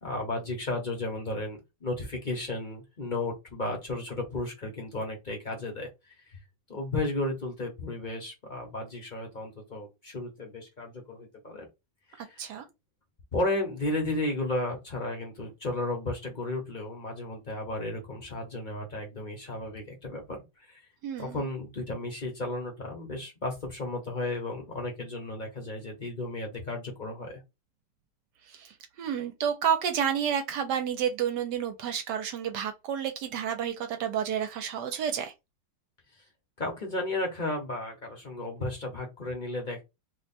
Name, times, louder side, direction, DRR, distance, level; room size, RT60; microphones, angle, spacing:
voice 1, 0.0-6.4 6.7-11.7 12.1-12.5 13.3-20.4 20.7-20.8 21.2-27.4 36.2-36.3 36.6-39.8, left 2 dB, 35° left, 0.8 m, -34 dB
voice 2, 21.0-21.4 28.5-35.3, right 8 dB, 75° right, 1.2 m, -30 dB
3.0 x 2.1 x 4.1 m
omnidirectional pair, 2.0 m